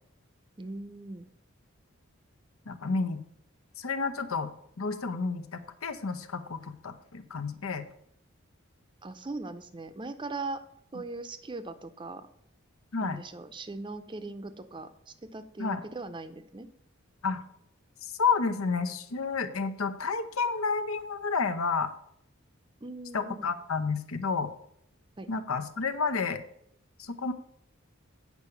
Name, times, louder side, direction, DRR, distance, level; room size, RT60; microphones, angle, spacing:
voice 1, 0.6-1.3 9.0-10.6 10.9-12.3 13.0-14.9 15.2-16.7 22.8-23.5 25.2-25.3, right 3 dB, 25° right, 11 dB, 0.5 m, -39 dB
voice 2, 2.7-3.2 3.8-4.5 4.8-7.8 12.9-13.2 15.6-15.8 17.2-17.4 18.0-21.9 23.1-24.5 25.3-26.4 27.0-27.3, left 4 dB, 85° left, 9 dB, 0.8 m, -30 dB
8.3 x 4.8 x 6.9 m, 0.72 s
head